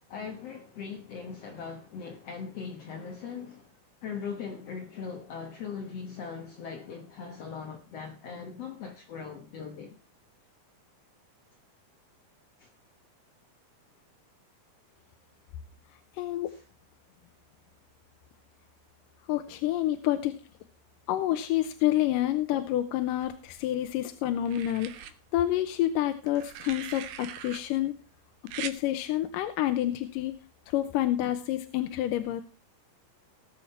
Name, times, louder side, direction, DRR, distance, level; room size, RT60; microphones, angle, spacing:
voice 1, 0.1-3.8 4.0-10.0 12.6-12.7 16.5-16.6, left 6 dB, 60° left, 1.8 m, -40 dB
voice 2, 16.2-16.5 19.3-20.4 21.1-27.9 28.6-30.4 30.7-32.4, left 13 dB, 80° left, 2.3 m, -28 dB
sound 1, 23.2-23.9 24.5-25.1 26.3-27.6 28.5-28.8 30.2-30.4, right 11 dB, 70° right, 2.4 m, -41 dB
18.0 x 7.4 x 4.3 m
omnidirectional pair, 4.1 m